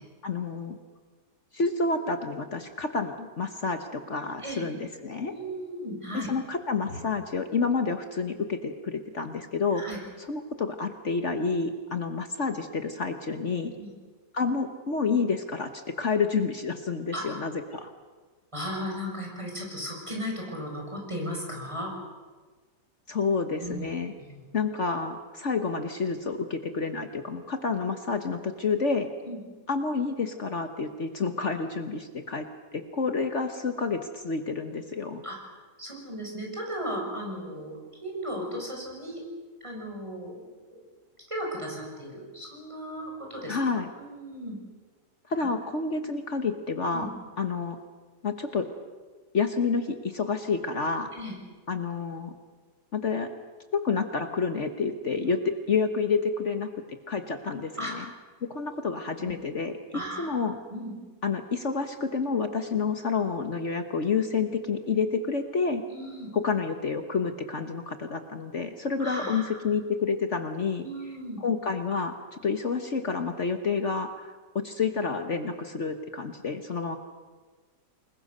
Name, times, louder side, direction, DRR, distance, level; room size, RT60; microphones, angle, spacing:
voice 1, 0.2-0.8 1.5-5.3 6.1-9.8 10.3-13.7 14.3-17.9 23.1-24.1 24.5-29.1 29.7-32.5 32.7-35.2 43.5-43.9 45.3-47.1 47.4-47.8 48.2-48.7 49.3-51.1 51.7-52.3 52.9-53.3 53.7-55.4 55.7-56.7 57.1-58.0 58.5-59.8 60.2-60.6 61.2-65.8 66.3-70.8 71.4-72.2 72.4-74.3 74.6-77.0, left 4 dB, 45° left, 7 dB, 1.4 m, -29 dB
voice 2, 5.2-6.3 9.7-10.0 13.8-13.9 17.1-17.4 18.5-21.9 23.6-23.9 24.2-24.5 29.2-29.4 35.2-35.4 35.8-39.2 39.6-40.4 40.7-40.8 41.3-43.6 44.0-44.6 46.9-47.1 51.1-51.3 55.3-55.4 57.8-57.9 59.2-59.3 59.9-60.4 60.7-60.9 65.9-66.3 69.0-69.6 70.8-71.4, equal, 15° right, -1 dB, 6.4 m, -36 dB
28.5 x 21.0 x 6.7 m, 1.4 s
omnidirectional pair, 1.8 m